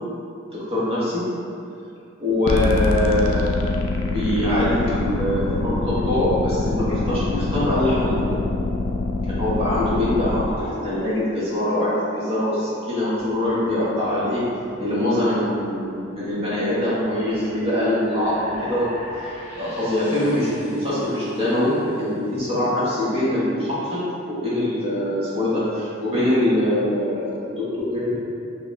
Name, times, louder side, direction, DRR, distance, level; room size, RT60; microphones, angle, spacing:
voice 1, 0.5-1.3 2.2-3.5 4.0-8.4 9.3-14.4 14.8-18.9 19.2-19.3 19.6-24.0 24.3-28.2, left 1 dB, 30° right, -9 dB, 1.2 m, -23 dB
sound 1, 2.5-10.5, left 3 dB, 85° left, 0.4 m, -24 dB
sound 2, 13.2-22.5, left 1 dB, 10° right, 1.1 m, -42 dB
4.8 x 2.4 x 3.2 m, 2.6 s
head